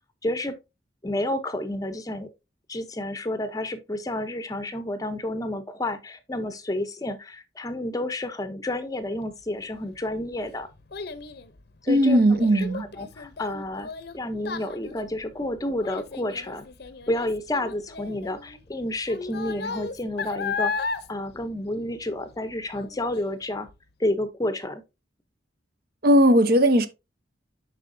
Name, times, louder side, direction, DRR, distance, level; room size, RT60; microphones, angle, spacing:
voice 1, 0.2-0.6 1.0-2.3 2.7-10.7 11.8-12.2 12.5-12.6 13.0-16.7 17.1-23.7 24.0-24.8, left 1 dB, 20° left, 0.7 m, -30 dB
Child speech kid speaking, 9.7-22.4 22.7-23.2 23.7-23.8, left 5 dB, 55° left, 0.7 m, -35 dB
voice 2, 11.9-12.9 26.0-26.9, equal, 50° right, 0.7 m, -18 dB
7.9 x 5.5 x 2.6 m
head